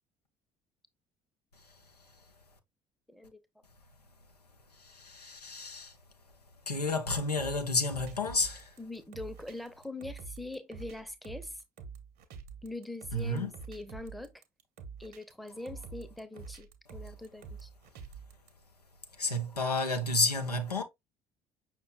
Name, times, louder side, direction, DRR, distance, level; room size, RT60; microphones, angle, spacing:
voice 1, 3.1-3.4 8.8-11.6 12.6-14.3 15.0-17.7, left 2 dB, ahead, 0.7 m, -43 dB
voice 2, 4.8-6.0 6.7-8.7 13.1-13.5 19.2-20.8, left 2 dB, 90° left, 0.6 m, -31 dB
sound 1, 7.4-18.5, right 5 dB, 55° right, 1.0 m, -47 dB
5.7 x 2.3 x 3.8 m
figure-of-eight pair, 55°, 20 cm